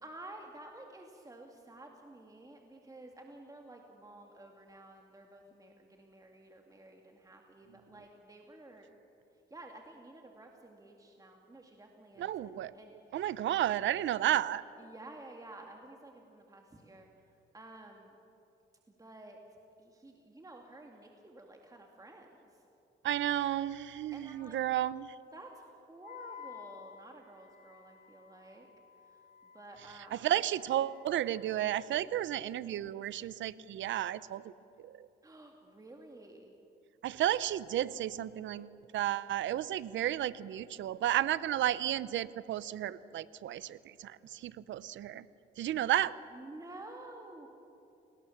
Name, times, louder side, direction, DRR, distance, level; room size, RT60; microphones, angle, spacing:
voice 1, 0.0-8.9 9.5-13.2 14.8-17.1 17.5-18.1 19.0-19.4 19.8-22.3 24.1-24.6 25.3-28.7 29.1-29.2 29.5-30.3 35.2-36.5 45.7-45.9 46.3-47.5, right 2 dB, 15° right, 2 dB, 2.2 m, -52 dB
voice 2, 12.2-12.7 13.1-14.6 23.0-25.1 30.1-34.5 34.8-35.1 37.0-45.2 45.6-46.1, right 12 dB, 70° right, 17 dB, 0.8 m, -32 dB
Wind instrument woodwind instrument, 26.0-32.2, left 7 dB, 50° left, 1.9 m, -54 dB
29.5 x 19.5 x 7.2 m, 2.9 s
cardioid pair, 90°, 20 cm